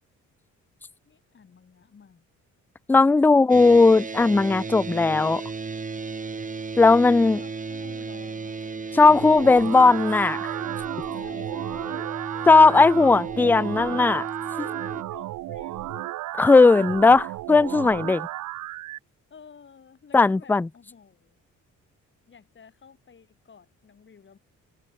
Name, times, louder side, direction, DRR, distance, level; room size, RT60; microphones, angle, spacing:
voice 1, 1.1-2.2 3.2-3.6 7.2-8.9 11.1-16.2 16.8-17.0 19.3-21.4 22.3-24.4, left 6 dB, 40° left, 3.6 m, -50 dB
voice 2, 2.9-5.4 6.8-7.4 8.9-10.4 12.5-14.2 16.4-18.3 20.1-20.7, left 3 dB, 5° left, 0.3 m, -17 dB
sound 1, 3.5-15.0, right 4 dB, 25° right, 2.0 m, -34 dB
sound 2, 9.0-19.0, right 16 dB, 80° right, 0.8 m, -34 dB
cardioid pair, 90°, 30 cm